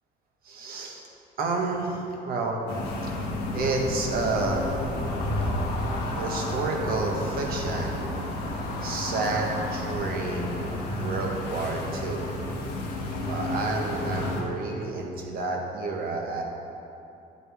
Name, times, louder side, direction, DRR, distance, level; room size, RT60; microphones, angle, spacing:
voice 1, 0.4-1.0 1.4-2.6 3.5-4.7 6.2-8.1 8.8-12.3 13.2-16.4, right 3 dB, 60° right, 0 dB, 1.6 m, -30 dB
sound 1, 2.7-14.4, left 1 dB, 85° left, 1.6 m, -31 dB
10.5 x 8.2 x 3.6 m, 2.7 s
cardioid pair, 110°, 17 cm